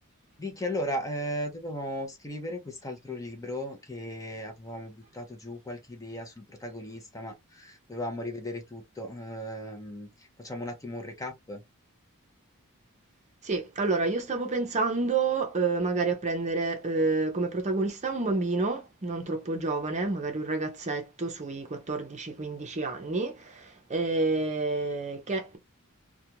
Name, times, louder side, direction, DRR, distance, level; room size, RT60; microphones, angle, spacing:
voice 1, 0.4-10.1 10.4-11.6, equal, 15° left, 0.6 m, -36 dB
voice 2, 13.4-25.6, right 3 dB, 30° right, 0.6 m, -29 dB
2.4 x 2.2 x 2.8 m
head